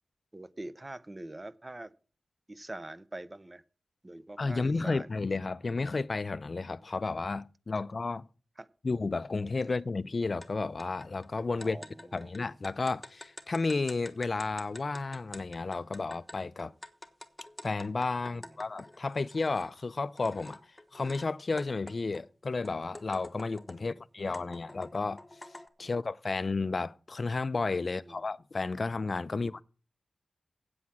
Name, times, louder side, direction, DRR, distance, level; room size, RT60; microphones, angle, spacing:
voice 1, 0.3-1.9 2.5-3.6 4.0-5.1 8.6-8.7 11.6-12.3 18.2-18.6 23.8-24.5 25.8-25.9 27.8-28.2 29.3-29.5, right 1 dB, 20° right, 0.6 m, -45 dB
voice 2, 4.4-8.3 8.8-11.8 12.1-16.7 17.6-20.6 20.9-25.2 25.8-29.6, left 3 dB, 45° left, 0.4 m, -32 dB
sound 1, 10.4-10.5 10.8-19.7 20.2-21.3 21.6-23.9 24.3-25.7, left 1 dB, 10° left, 1.1 m, -48 dB
8.5 x 7.9 x 7.1 m
wide cardioid pair, 105°, 0 cm